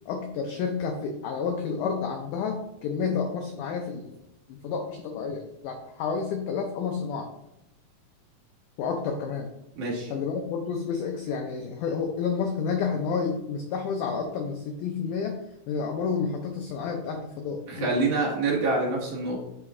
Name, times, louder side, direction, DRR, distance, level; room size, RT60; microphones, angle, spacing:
voice 1, 0.1-4.1 4.5-7.3 8.8-9.5 10.1-15.4 15.7-18.2, left 5 dB, 85° left, 3 dB, 1.8 m, -30 dB
voice 2, 9.8-10.1 17.7-19.4, right 3 dB, 60° right, -4 dB, 2.8 m, -26 dB
7.8 x 4.3 x 3.6 m, 0.86 s
omnidirectional pair, 4.4 m